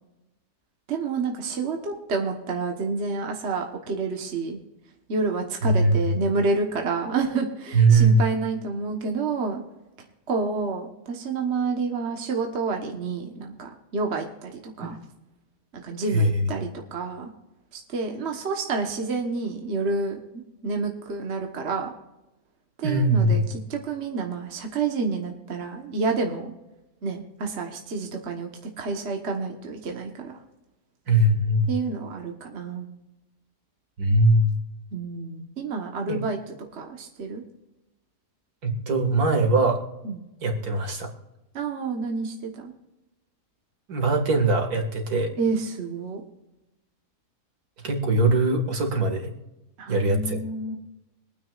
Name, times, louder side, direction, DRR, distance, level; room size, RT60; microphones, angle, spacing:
voice 1, 0.9-4.6 5.1-9.6 10.3-15.0 15.7-17.3 17.7-20.2 20.6-21.9 22.8-23.4 23.7-26.5 27.0-28.5 28.8-30.4 31.7-32.9 34.9-36.4 36.7-37.4 40.0-40.2 41.5-42.7 45.4-46.2 49.8-50.7, right 4 dB, 45° right, 2 dB, 1.4 m, -29 dB
voice 2, 5.6-6.1 7.7-8.2 14.8-15.0 16.1-16.5 22.8-23.5 31.1-31.8 34.0-34.5 36.1-36.2 38.6-39.8 40.4-41.1 43.9-45.3 47.8-49.3 49.9-50.4, right 2 dB, 65° right, 3 dB, 2.4 m, -21 dB
25.0 x 9.5 x 2.4 m, 1.0 s
omnidirectional pair, 1.8 m